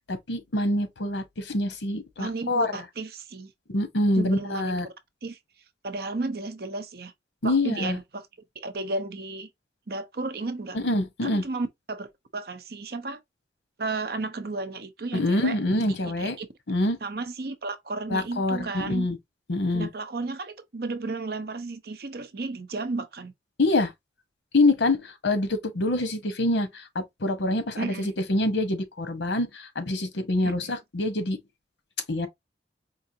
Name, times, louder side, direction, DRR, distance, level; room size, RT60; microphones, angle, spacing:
voice 1, 0.1-2.7 3.7-4.9 7.4-8.0 10.7-11.4 15.1-16.4 16.7-17.0 18.1-19.2 19.5-19.9 23.6-23.9 24.5-31.4 32.1-32.3, left 2 dB, 85° left, 0.9 m, -25 dB
voice 2, 2.2-3.5 4.2-4.8 5.2-5.4 5.8-7.1 7.4-8.3 8.6-9.5 9.9-10.8 11.2-13.2 13.8-16.5 17.0-19.1 19.7-23.3 27.8-28.1 30.4-30.7, right 3 dB, 55° right, 0.6 m, -33 dB
4.6 x 2.5 x 2.7 m
head